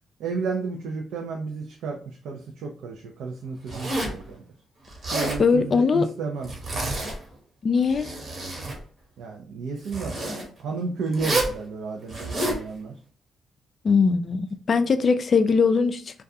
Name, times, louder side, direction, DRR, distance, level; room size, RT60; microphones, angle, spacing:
voice 1, 0.2-4.4 5.1-6.5 9.2-10.2 10.6-12.9, right 4 dB, 80° right, 0.4 m, -32 dB
Zipper (clothing), 3.7-4.2 4.9-5.4 6.4-7.3 7.8-8.8 9.9-10.4 11.1-11.6 12.1-12.6, right 2 dB, 50° right, 1.1 m, -29 dB
voice 2, 5.4-6.1 7.6-8.1 13.8-16.2, left 5 dB, 50° left, 0.3 m, -21 dB
2.3 x 2.2 x 2.6 m
cardioid pair, 70°, 0 cm